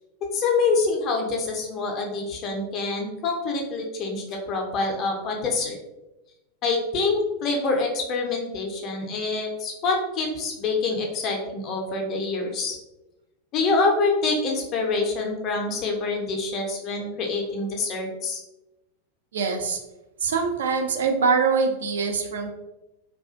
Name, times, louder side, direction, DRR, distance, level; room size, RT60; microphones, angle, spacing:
voice 1, 0.3-5.7 6.6-12.7 13.5-18.4, left 3 dB, 35° left, 1 dB, 0.5 m, -26 dB
voice 2, 19.3-19.8 20.2-22.5, right 5 dB, 65° right, 4 dB, 0.3 m, -23 dB
2.3 x 2.3 x 2.5 m, 0.98 s
figure-of-eight pair, 90°, 0 cm